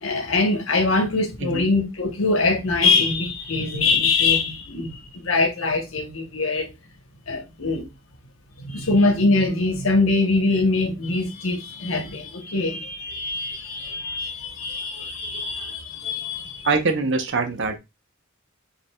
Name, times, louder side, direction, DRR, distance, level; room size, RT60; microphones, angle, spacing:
voice 1, 0.0-6.7 7.3-7.9 8.6-16.7, left 3 dB, 75° left, 1.0 m, -23 dB
voice 2, 1.4-1.7 16.6-17.8, right 3 dB, 60° right, 0.9 m, -23 dB
5.2 x 3.4 x 2.3 m
head